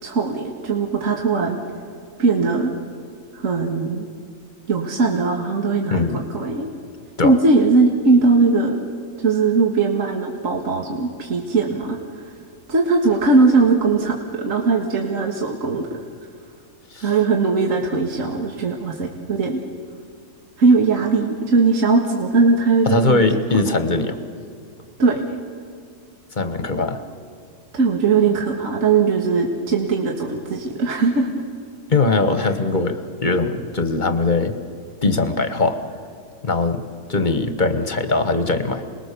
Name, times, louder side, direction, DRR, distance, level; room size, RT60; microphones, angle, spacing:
voice 1, 0.0-1.6 2.2-2.7 3.3-4.1 4.7-6.7 7.2-8.8 9.2-12.2 12.7-16.0 17.0-19.6 20.6-23.2 25.0-25.2 27.7-31.3, right 4 dB, 60° right, 1 dB, 2.0 m, -19 dB
voice 2, 5.9-6.2 7.2-7.4 16.9-17.1 22.8-24.2 26.3-27.0 31.9-34.5 35.0-35.8 36.4-36.8 37.1-38.8, left 3 dB, 35° left, 8 dB, 1.4 m, -20 dB
27.5 x 20.5 x 6.9 m, 2.3 s
omnidirectional pair, 1.6 m